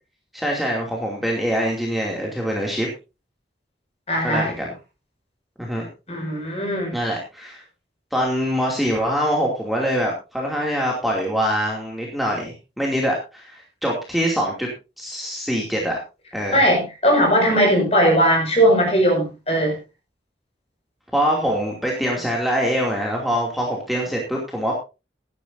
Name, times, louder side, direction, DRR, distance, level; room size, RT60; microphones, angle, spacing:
voice 1, 0.3-2.9 4.2-4.7 5.6-5.9 6.9-7.6 8.1-14.7 15.0-16.0 16.3-16.6 21.1-24.7, equal, ahead, -2 dB, 2.5 m, -24 dB
voice 2, 4.1-4.5 6.1-6.9 16.5-19.8, equal, 35° left, 1 dB, 5.8 m, -18 dB
16.5 x 12.0 x 2.7 m, 0.28 s
head